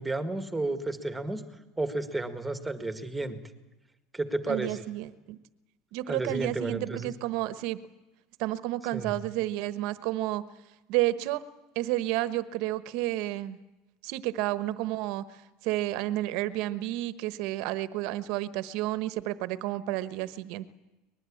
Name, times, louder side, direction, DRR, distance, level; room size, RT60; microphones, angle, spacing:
voice 1, 0.0-1.4 1.8-3.4 4.1-4.8 6.1-7.1 8.9-9.1, right 2 dB, 5° right, 9 dB, 1.8 m, -32 dB
voice 2, 4.5-5.4 5.9-7.8 8.4-10.4 10.9-11.4 11.7-13.6 14.0-20.7, right 15 dB, 65° right, 14 dB, 1.2 m, -31 dB
23.5 x 20.5 x 8.7 m, 1.1 s
cardioid pair, 145°, 0 cm